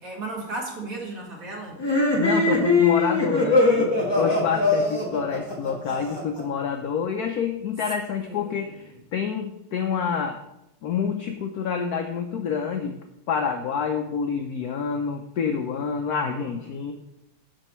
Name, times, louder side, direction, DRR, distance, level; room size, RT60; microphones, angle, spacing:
voice 1, 0.0-1.8 8.2-8.7 16.1-16.6, right 2 dB, 45° right, -2 dB, 1.9 m, -36 dB
sound 1, 1.8-6.4, left 3 dB, 15° left, 1.2 m, -22 dB
voice 2, 2.2-10.4 10.8-13.0 13.3-16.9, left 6 dB, 80° left, 5 dB, 0.8 m, -28 dB
8.8 x 6.2 x 3.0 m, 0.86 s
omnidirectional pair, 2.2 m